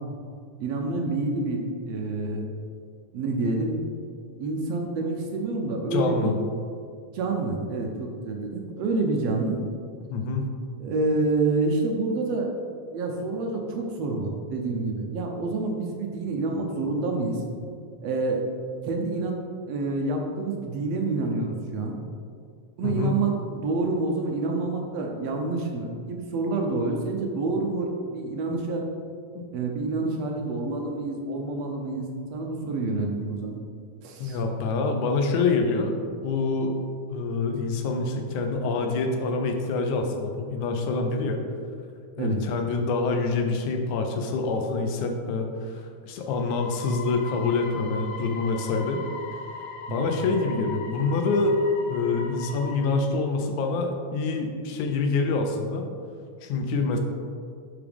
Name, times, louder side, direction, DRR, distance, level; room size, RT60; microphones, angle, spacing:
voice 1, 0.6-2.4 3.1-3.7 4.4-6.4 7.1-9.6 10.8-12.5 12.9-17.5 18.0-18.4 18.8-19.4 19.7-22.0 22.8-28.8 29.5-33.6 34.0-34.4 42.2-42.4 49.9-50.0, right 3 dB, 70° right, 2 dB, 1.7 m, -28 dB
voice 2, 5.9-6.3 10.1-10.5 22.8-23.2 29.3-29.4 34.2-35.9 36.2-36.8 37.1-41.4 42.2-49.0 49.9-51.6 51.9-55.8 56.4-57.0, left 3 dB, 80° left, 4 dB, 2.1 m, -26 dB
sound 1, 46.2-53.0, left 4 dB, 65° left, 1.7 m, -39 dB
11.0 x 4.8 x 3.5 m, 2.2 s
omnidirectional pair, 3.4 m